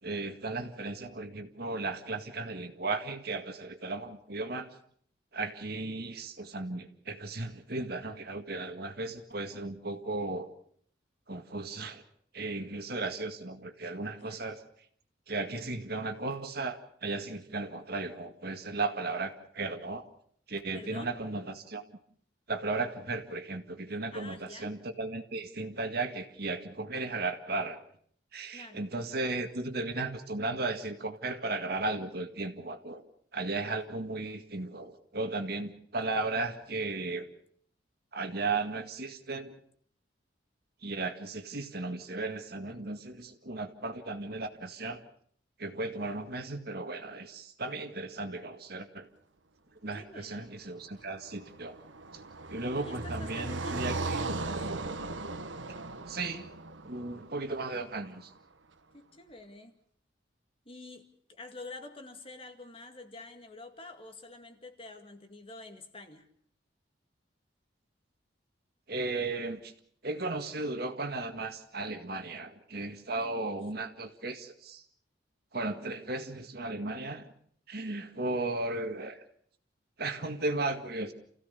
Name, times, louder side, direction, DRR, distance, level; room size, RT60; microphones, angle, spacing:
voice 1, 0.0-4.7 5.3-10.5 11.3-12.0 12.3-14.6 15.3-20.1 20.5-21.9 22.5-27.8 28.3-33.0 33.3-37.3 38.1-39.6 40.8-45.0 45.6-49.1 49.8-51.8 52.1-52.2 52.5-54.2 55.7-56.5 56.8-58.3 68.9-69.7 70.0-74.8 75.5-77.3 77.7-79.2 80.0-81.1, right 3 dB, 55° right, 7 dB, 1.9 m, -35 dB
voice 2, 20.7-21.2 24.1-24.8 28.5-28.8 49.9-50.6 52.7-54.7 58.9-59.7 60.7-66.3 73.2-73.6, left 2 dB, 30° left, 6 dB, 2.1 m, -48 dB
Car passing by, 50.9-58.1, right 3 dB, 90° right, 1.5 m, -38 dB
29.0 x 16.0 x 6.9 m, 0.63 s
head